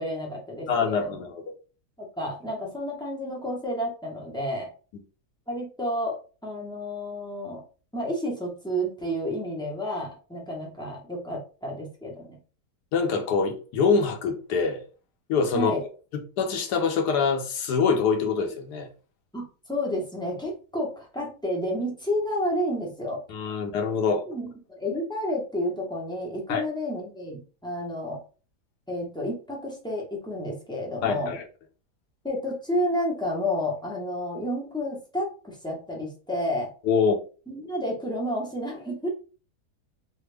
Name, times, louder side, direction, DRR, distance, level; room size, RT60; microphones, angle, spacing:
voice 1, 0.0-1.1 2.0-4.7 5.5-7.6 7.9-12.4 15.5-15.8 19.3-23.2 24.3-28.2 28.9-31.4 32.2-36.7 37.5-39.1, equal, 5° left, -2 dB, 0.4 m, -30 dB
voice 2, 0.7-1.4 12.9-14.8 15.3-15.9 16.1-18.9 23.3-24.2 26.5-26.6 31.0-31.4 36.8-37.1, left 5 dB, 80° left, 4 dB, 1.3 m, -25 dB
3.3 x 2.1 x 3.3 m, 0.36 s
omnidirectional pair, 1.7 m